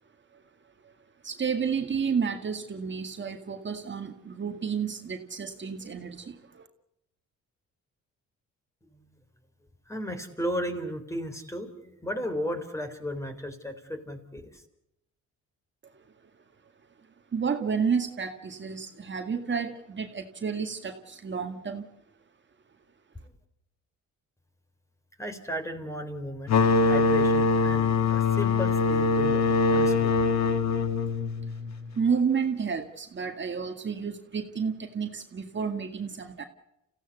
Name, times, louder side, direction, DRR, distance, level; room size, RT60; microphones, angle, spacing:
voice 1, 1.2-6.4 17.3-21.9 32.0-36.4, right 6 dB, 40° right, 5 dB, 2.0 m, -30 dB
voice 2, 9.9-14.6 25.2-26.5 26.8-30.1, equal, 10° left, 7 dB, 3.8 m, -34 dB
sound 1, 26.5-31.9, left 4 dB, 60° left, 2.0 m, -23 dB
28.0 x 16.0 x 8.2 m, 0.85 s
cardioid pair, 90°, 30 cm